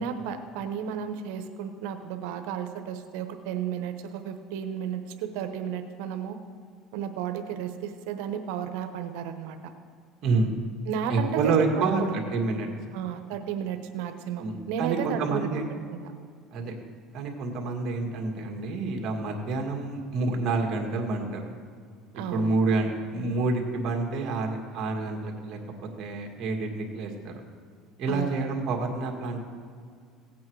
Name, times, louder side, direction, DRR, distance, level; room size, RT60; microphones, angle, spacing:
voice 1, 0.0-6.4 6.9-9.6 10.9-12.1 12.9-15.5 15.9-16.0 22.1-22.5 28.1-28.4, right 8 dB, 80° right, 7 dB, 1.0 m, -33 dB
voice 2, 10.2-10.5 11.1-12.7 14.4-15.7 16.5-16.8 17.1-21.5 22.3-27.4 28.0-29.4, right 3 dB, 50° right, 1 dB, 2.1 m, -28 dB
16.5 x 8.5 x 4.7 m, 2.1 s
cardioid pair, 125°, 0 cm